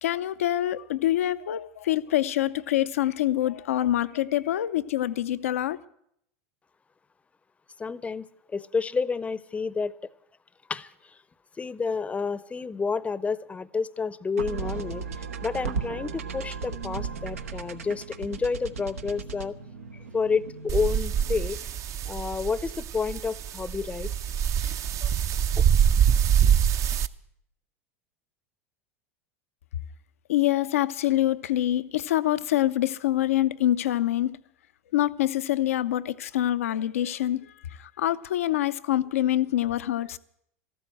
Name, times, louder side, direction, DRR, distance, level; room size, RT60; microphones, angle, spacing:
voice 1, 0.0-5.8 30.3-34.4 34.9-40.2, left 13 dB, 80° left, 0.6 m, -25 dB
voice 2, 7.8-10.0 10.7-11.2 11.6-19.6 19.9-21.6 22.0-24.1 25.6-25.7, left 5 dB, 15° left, 0.6 m, -30 dB
sound 1, 14.4-21.7, right 5 dB, 90° right, 0.9 m, -36 dB
sound 2, 20.7-27.1, right 8 dB, 40° right, 0.6 m, -24 dB
14.0 x 12.5 x 7.6 m
hypercardioid pair, 90°, 7 cm